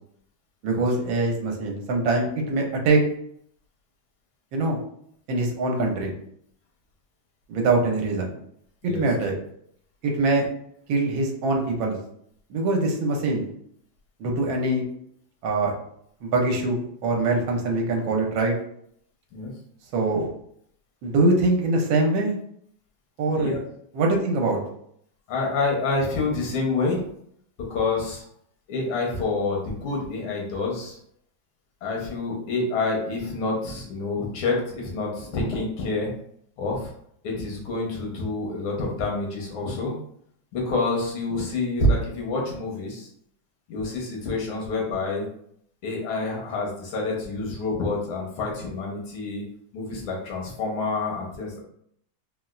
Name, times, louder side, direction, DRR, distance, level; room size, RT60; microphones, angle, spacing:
voice 1, 0.6-3.0 4.5-4.8 5.3-6.1 7.5-8.3 8.8-9.3 10.0-10.5 10.9-12.0 12.5-13.5 14.2-14.8 15.4-15.7 16.2-18.5 19.9-20.3 21.0-22.3 23.2-23.6 23.9-24.6, right 2 dB, 80° right, 1 dB, 1.4 m, -23 dB
voice 2, 23.3-23.6 25.3-27.0 27.6-28.2 28.7-31.0 31.8-36.1 36.6-36.9 37.2-39.9 40.5-43.1 43.7-45.3 45.8-49.4 49.7-51.6, left 3 dB, 90° left, -1 dB, 1.7 m, -27 dB
4.0 x 2.1 x 2.3 m, 0.68 s
omnidirectional pair, 2.2 m